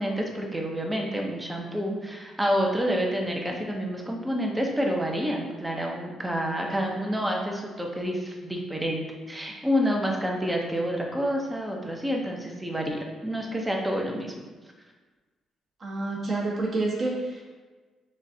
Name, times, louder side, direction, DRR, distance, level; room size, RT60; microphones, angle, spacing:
voice 1, 0.0-14.3, equal, 10° right, 0 dB, 0.8 m, -28 dB
voice 2, 6.6-6.9 15.8-17.4, right 2 dB, 40° right, -4 dB, 1.4 m, -29 dB
7.1 x 2.5 x 2.8 m, 1.3 s
cardioid pair, 90°, 0 cm